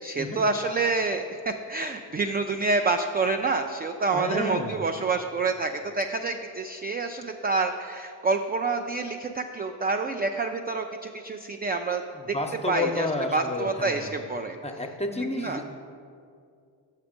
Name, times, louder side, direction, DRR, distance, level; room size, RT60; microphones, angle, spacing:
voice 1, 0.0-12.0 12.3-12.4 12.7-14.6 15.2-15.6, right 3 dB, 25° right, 6 dB, 0.3 m, -28 dB
voice 2, 4.1-4.8 12.3-14.1 14.6-15.7, left 2 dB, 15° left, 5 dB, 0.7 m, -30 dB
5.9 x 5.5 x 5.1 m, 2.3 s
supercardioid pair, 45°, 45 cm